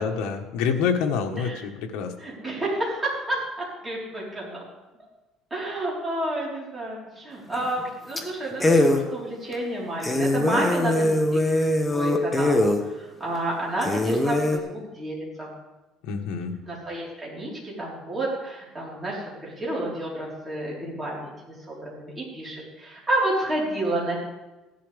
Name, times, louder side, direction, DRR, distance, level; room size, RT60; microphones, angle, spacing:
voice 1, 0.0-2.1 16.0-16.5, left 6 dB, 80° left, 3 dB, 1.3 m, -27 dB
voice 2, 2.2-3.4 3.8-4.6 5.5-15.5 16.7-21.3 21.7-24.2, right 1 dB, 15° right, -5 dB, 4.1 m, -30 dB
sound 1, 7.5-7.9 8.2-8.3 8.6-9.0 9.5-9.6 10.0-12.8 13.3-13.4 13.8-14.6, left 1 dB, 10° left, 1.0 m, -22 dB
15.0 x 11.5 x 3.5 m, 1.1 s
cardioid pair, 160°, 0 cm